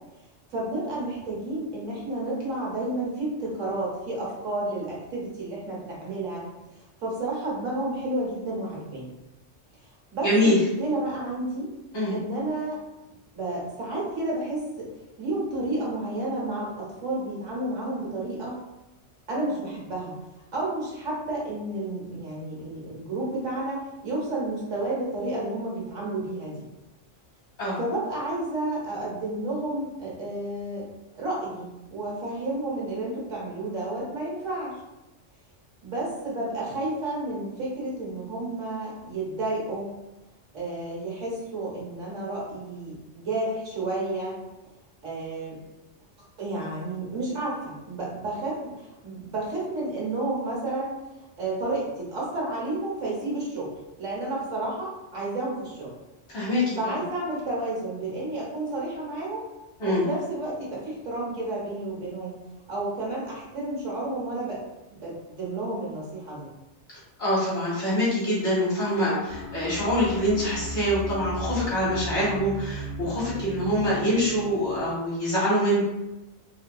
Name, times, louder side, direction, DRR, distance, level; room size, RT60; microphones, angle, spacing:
voice 1, 0.5-6.4 6.7-9.1 10.1-11.7 12.1-12.8 13.3-14.9 15.2-18.6 19.3-20.1 20.5-26.6 27.8-30.9 31.1-34.8 35.8-39.9 40.5-44.3 45.0-45.6 46.4-51.0 51.4-55.9 56.8-59.4 59.8-62.4 62.7-64.6 64.9-66.5, right 2 dB, 85° right, -5 dB, 1.5 m, -31 dB
voice 2, 10.2-10.6 11.9-12.2 27.6-27.8 56.3-57.0 59.8-60.1 66.9-75.8, equal, 70° left, -7 dB, 1.8 m, -25 dB
sound 1, 69.3-74.9, equal, 50° left, 1.3 m, -36 dB
4.4 x 2.6 x 2.3 m, 0.99 s
omnidirectional pair, 1.2 m